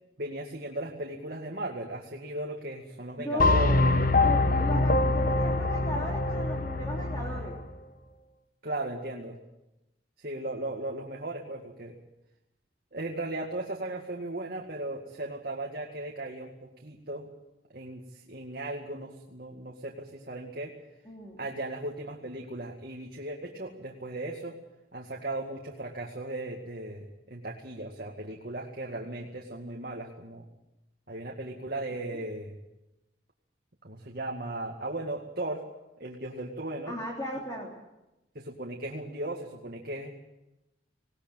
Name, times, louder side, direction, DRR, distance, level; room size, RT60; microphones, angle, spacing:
voice 1, 0.2-4.4 8.6-9.4 10.2-12.0 12.9-17.3 17.7-20.8 21.4-24.6 24.9-30.4 31.1-32.6 33.8-35.6 36.0-36.9 38.3-40.1, right 2 dB, 50° right, 0 dB, 2.1 m, -37 dB
voice 2, 3.2-3.9 4.2-7.6 21.0-21.4 36.9-37.7, equal, 20° left, -2 dB, 3.2 m, -36 dB
sound 1, 3.4-7.6, left 2 dB, 45° left, 1.0 m, -24 dB
20.0 x 18.5 x 9.1 m, 0.95 s
head